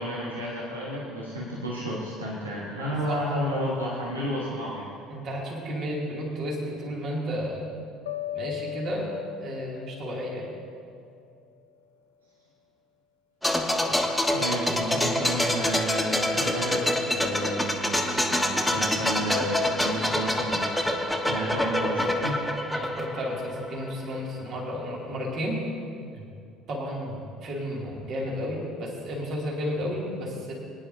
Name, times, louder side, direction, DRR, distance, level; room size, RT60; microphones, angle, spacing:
voice 1, 0.0-4.9 14.3-20.7 21.2-22.4, equal, 85° right, -5 dB, 1.4 m, -31 dB
voice 2, 5.1-7.7 8.3-10.4 22.7-25.6 26.1-26.2 26.7-30.5, equal, 50° right, -3 dB, 2.6 m, -32 dB
sound 1, 8.1-11.2, left 11 dB, 75° left, 0.5 m, -38 dB
sound 2, 13.4-24.1 24.3-24.5, left 1 dB, ahead, 1.3 m, -26 dB
21.5 x 10.0 x 2.7 m, 2.5 s
figure-of-eight pair, 60°, 0 cm